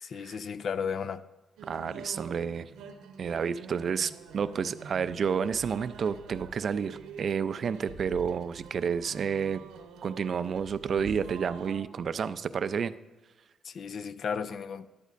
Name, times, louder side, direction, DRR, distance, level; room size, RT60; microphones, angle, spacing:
voice 1, 0.0-1.2 13.6-14.9, left 6 dB, 55° left, 0.5 m, -34 dB
voice 2, 1.6-2.7 3.2-9.6 10.0-12.9, right 6 dB, 50° right, 0.4 m, -30 dB
sound 1, 1.6-11.8, right 6 dB, 90° right, 0.9 m, -46 dB
12.0 x 12.0 x 2.5 m
cardioid pair, 90°, 0 cm